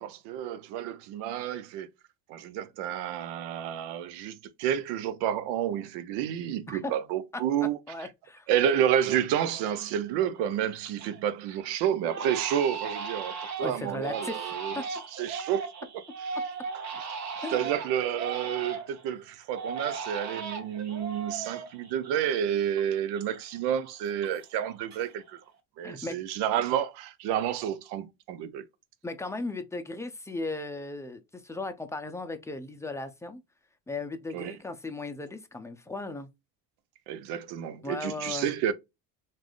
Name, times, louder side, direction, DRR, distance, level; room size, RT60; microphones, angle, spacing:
voice 1, 0.0-1.9 2.3-7.8 8.5-15.7 16.3-16.4 17.5-25.4 25.8-28.6 34.3-34.5 37.1-38.7, right 10 dB, 75° right, 0.6 m, -30 dB
voice 2, 7.9-8.5 13.6-14.8 17.4-17.7 25.8-26.2 29.0-33.4 33.9-36.3 37.8-38.5, left 3 dB, 5° left, 0.5 m, -37 dB
Crying sobbing, 9.5-10.0 10.4-11.2 11.5-11.7 12.1-19.0 19.5-22.8 23.1-24.6 24.9-25.4, right 5 dB, 40° right, 0.9 m, -37 dB
3.3 x 2.6 x 2.3 m
supercardioid pair, 95°, 42 cm